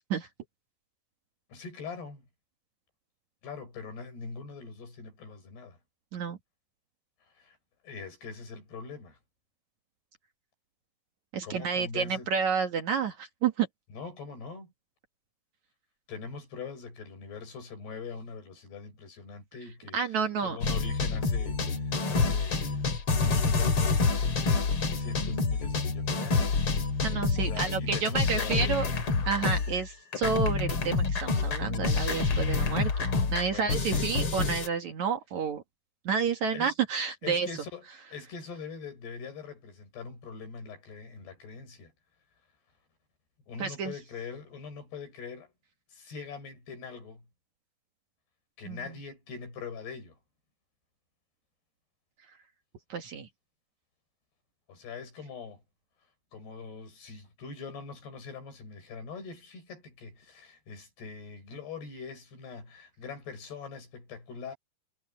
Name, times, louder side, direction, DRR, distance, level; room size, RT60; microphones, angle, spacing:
voice 1, 1.5-2.3 3.4-5.8 7.3-7.6 7.8-9.2 11.4-12.3 13.9-14.7 16.1-24.2 24.6-26.7 27.4-28.8 33.5-34.1 36.5-36.7 37.2-41.9 43.5-45.5 45.9-47.3 48.6-50.2 54.7-55.6 56.3-64.5, left 5 dB, 80° left, 9.1 m, -43 dB
voice 2, 11.3-13.7 19.9-20.6 27.0-28.9 29.3-35.6 36.1-37.5 43.6-43.9 48.7-48.8 52.9-53.3, right 6 dB, 55° right, 2.5 m, -30 dB
sound 1, 20.6-29.9 30.1-34.7, left 4 dB, 40° left, 2.9 m, -28 dB
omnidirectional pair, 4.6 m